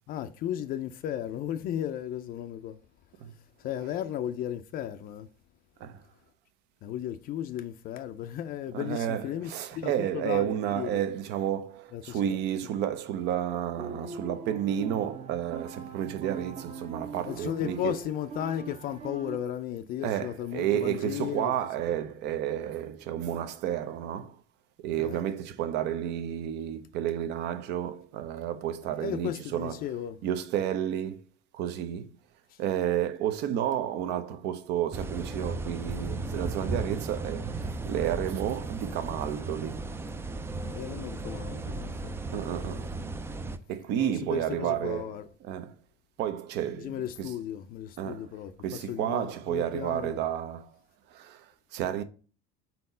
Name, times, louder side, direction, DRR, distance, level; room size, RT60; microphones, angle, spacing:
voice 1, 0.1-2.8 3.6-5.3 6.8-11.0 11.9-12.4 17.3-21.5 25.0-25.2 29.0-30.2 32.5-32.6 40.7-42.2 44.0-45.3 46.8-50.2, left 11 dB, 45° left, 0.5 m, -35 dB
voice 2, 8.7-17.9 20.0-24.4 24.8-29.8 30.2-31.2 31.5-32.1 32.6-39.8 42.3-42.9 43.7-45.1 45.4-45.7 46.2-47.3 48.0-48.3 48.6-50.7 51.1-52.0, right 10 dB, 60° right, 0.8 m, -31 dB
sound 1, 13.8-19.4, right 4 dB, 30° right, 0.9 m, -41 dB
sound 2, 34.9-43.6, right 3 dB, 10° right, 0.4 m, -35 dB
4.3 x 4.1 x 5.4 m
supercardioid pair, 130°, 20 cm